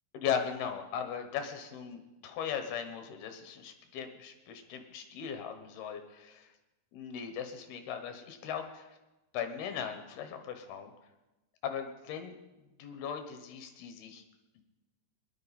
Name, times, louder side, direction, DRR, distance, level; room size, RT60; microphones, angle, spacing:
voice 1, 0.1-6.5 6.9-8.8 9.3-10.9 11.6-12.3 12.8-14.2 14.6-14.7, left 8 dB, 75° left, 6 dB, 3.0 m, -38 dB
21.5 x 11.5 x 4.2 m, 1.0 s
omnidirectional pair, 4.7 m